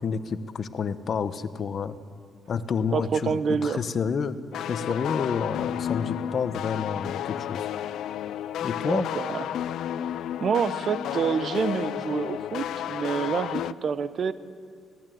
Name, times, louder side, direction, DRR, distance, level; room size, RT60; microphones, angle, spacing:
voice 1, 0.0-2.0 2.5-7.7 8.6-9.1, left 6 dB, 50° left, 12 dB, 1.0 m, -29 dB
sound 1, 1.8-4.0 4.6-4.7 4.9-9.5, right 3 dB, 90° right, 4.2 m, -55 dB
voice 2, 2.9-3.8 8.8-9.4 10.4-14.3, right 6 dB, 55° right, 14 dB, 0.8 m, -27 dB
sound 2, 4.5-13.7, left 11 dB, 80° left, 0.5 m, -32 dB
19.0 x 16.0 x 9.3 m, 2.1 s
cardioid pair, 90°, 0 cm